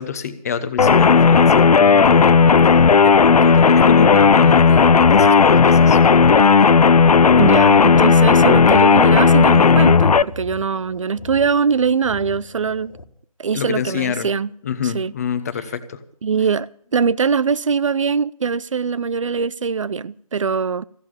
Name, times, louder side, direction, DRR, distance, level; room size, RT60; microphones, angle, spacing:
voice 1, 0.0-6.0 13.5-14.3 14.6-16.0, left 7 dB, 25° left, 0.9 m, -27 dB
sound 1, 0.8-10.2, left 5 dB, 85° left, 0.5 m, -12 dB
sound 2, 4.9-13.0, left 1 dB, 60° left, 1.7 m, -42 dB
voice 2, 7.4-12.9 13.4-14.5 14.8-15.1 16.2-20.8, right 5 dB, 55° right, 0.6 m, -22 dB
15.5 x 7.4 x 9.7 m
figure-of-eight pair, 160°, 19 cm